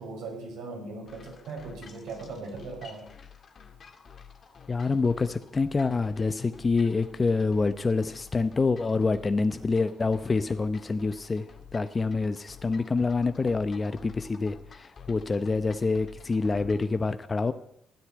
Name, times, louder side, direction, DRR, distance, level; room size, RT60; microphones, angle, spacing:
voice 1, 0.0-3.1, right 3 dB, 90° right, 0 dB, 5.8 m, -39 dB
sound 1, 1.1-16.9, left 6 dB, 50° left, 2.2 m, -50 dB
voice 2, 4.7-11.5 11.7-17.5, left 4 dB, 30° left, 10 dB, 0.8 m, -26 dB
13.5 x 9.6 x 8.9 m, 0.73 s
cardioid pair, 90°, 0 cm